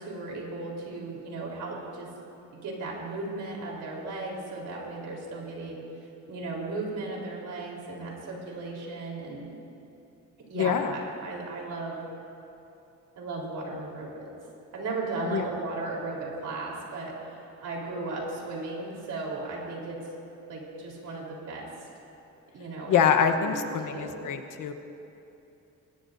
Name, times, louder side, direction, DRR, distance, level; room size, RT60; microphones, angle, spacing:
voice 1, 0.0-2.1 2.5-5.8 6.3-9.5 10.5-12.0 13.2-14.3 14.7-20.0 20.5-21.7 22.5-24.3, right 3 dB, 80° right, -2 dB, 3.9 m, -36 dB
voice 2, 10.6-10.9 15.3-15.5 22.9-24.7, left 7 dB, 80° left, 7 dB, 1.1 m, -25 dB
22.0 x 19.5 x 2.7 m, 2.8 s
wide cardioid pair, 140°, 31 cm